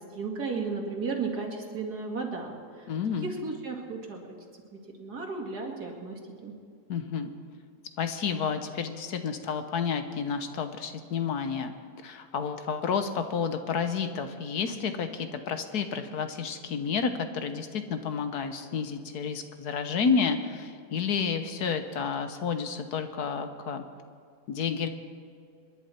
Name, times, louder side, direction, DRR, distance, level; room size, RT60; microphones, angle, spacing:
voice 1, 0.1-2.5 2.8-2.9 3.2-4.2 5.0-6.5, right 4 dB, 70° right, 1 dB, 2.6 m, -34 dB
voice 2, 2.9-3.3 6.9-7.3 8.0-11.7 12.0-23.8 24.5-24.9, left 6 dB, 70° left, 8 dB, 1.5 m, -30 dB
26.5 x 11.0 x 4.4 m, 2.3 s
omnidirectional pair, 1.8 m